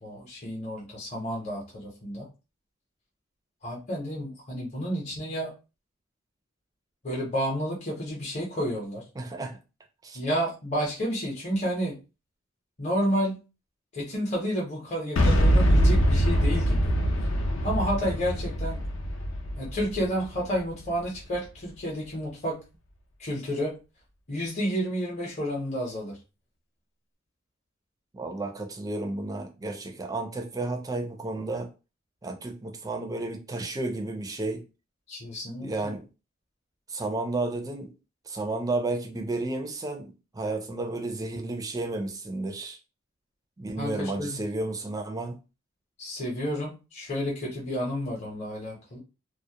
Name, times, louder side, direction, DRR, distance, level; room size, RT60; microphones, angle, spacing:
voice 1, 0.0-2.3 3.6-5.5 7.0-9.0 10.1-12.0 12.8-13.4 13.9-16.8 17.6-18.8 19.6-22.6 23.2-23.7 24.3-26.2 35.1-35.9 43.8-44.4 46.0-49.0, equal, 35° left, 0.7 m, -30 dB
voice 2, 9.2-9.6 10.0-10.2 28.1-31.7 32.2-34.6 35.6-36.1 36.9-37.9 38.3-42.8 43.6-45.4, right 2 dB, 20° right, 0.4 m, -32 dB
Boom, 15.2-21.0, equal, 70° left, 0.5 m, -23 dB
2.2 x 2.0 x 2.8 m
head